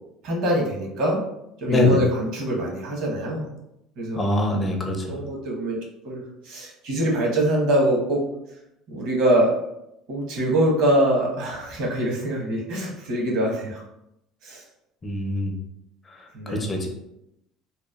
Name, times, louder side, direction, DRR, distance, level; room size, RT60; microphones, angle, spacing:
voice 1, 0.2-1.2 1.6-3.5 4.0-4.3 5.1-5.8 6.0-8.2 8.9-9.5 10.1-13.8 14.4-14.6 16.3-16.7, right 1 dB, 70° right, -2 dB, 0.9 m, -24 dB
voice 2, 4.2-5.2 15.0-15.5 16.7-16.9, left 2 dB, 25° left, 2 dB, 0.5 m, -23 dB
2.9 x 2.2 x 2.3 m, 0.84 s
supercardioid pair, 110°, 0 cm